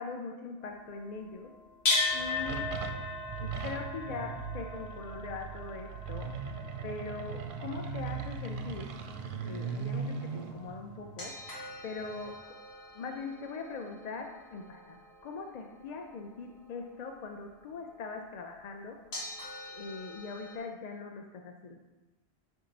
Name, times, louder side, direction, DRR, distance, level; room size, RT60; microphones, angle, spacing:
voice 1, 0.0-1.5 2.1-2.7 3.4-6.3 6.8-8.9 9.4-11.3 11.8-12.4 12.9-19.0 19.7-21.8, left 4 dB, 55° left, 3 dB, 0.5 m, -41 dB
sound 1, 0.6-16.8 17.7-17.8 19.1-20.6, left 3 dB, 70° left, 1.7 m, -39 dB
sound 2, 2.0-12.4, right 5 dB, 60° right, 0.6 m, -39 dB
4.9 x 4.4 x 5.2 m, 1.1 s
omnidirectional pair, 1.1 m